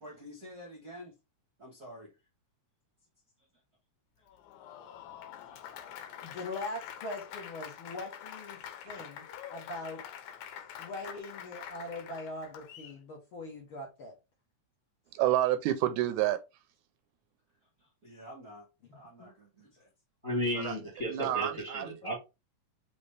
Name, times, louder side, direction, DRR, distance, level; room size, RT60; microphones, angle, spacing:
voice 1, 0.0-1.1 1.6-2.1 17.8-18.7 18.9-19.9, equal, 50° right, 1.1 m, -49 dB
Applause, 4.3-13.0, left 10 dB, 90° left, 2.2 m, -46 dB
voice 2, 6.2-8.6 8.8-10.0 10.8-14.1 19.2-19.3, left 2 dB, 55° left, 1.7 m, -41 dB
voice 3, 15.1-16.4 20.6-20.8 21.1-21.9, right 13 dB, 80° right, 1.9 m, -29 dB
voice 4, 20.2-22.2, equal, 30° left, 1.3 m, -34 dB
5.3 x 3.1 x 3.2 m
omnidirectional pair, 3.5 m